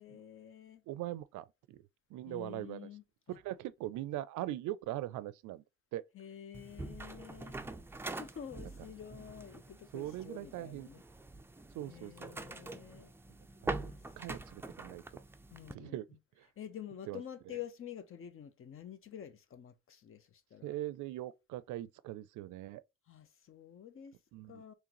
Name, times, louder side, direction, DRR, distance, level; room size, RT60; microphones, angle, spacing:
voice 1, 0.0-0.8 2.3-3.4 6.1-7.6 8.2-11.0 11.8-13.1 13.8-14.0 15.5-16.2 16.6-20.7 23.1-24.2 24.5-24.7, left 9 dB, 45° left, 0.7 m, -49 dB
voice 2, 0.9-1.8 2.1-2.9 3.3-5.6 5.9-6.1 9.9-10.9 11.7-12.4 13.6-15.0 15.7-16.1 16.4-16.5 17.1-17.2 20.6-22.8 24.3-24.6, right 14 dB, 85° right, 0.5 m, -41 dB
sound 1, 6.5-15.7, right 2 dB, 10° right, 0.4 m, -44 dB
3.7 x 3.1 x 3.0 m
cardioid pair, 90°, 30 cm